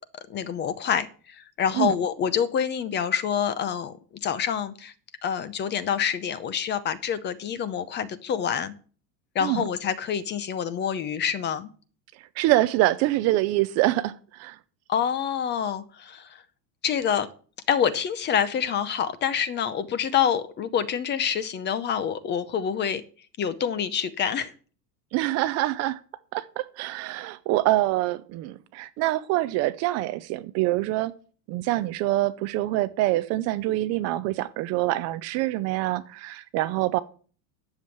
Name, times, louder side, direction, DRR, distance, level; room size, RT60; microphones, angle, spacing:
voice 1, 0.3-4.9 5.2-8.7 9.3-11.7 14.9-16.4 16.8-17.3 17.7-23.0 23.4-24.5, left 8 dB, 25° left, 16 dB, 0.6 m, -27 dB
voice 2, 12.2-14.6 25.1-26.0 26.3-31.1 31.5-37.0, right 16 dB, 35° right, 14 dB, 0.4 m, -25 dB
10.5 x 7.2 x 7.8 m, 0.41 s
supercardioid pair, 160°, 47 cm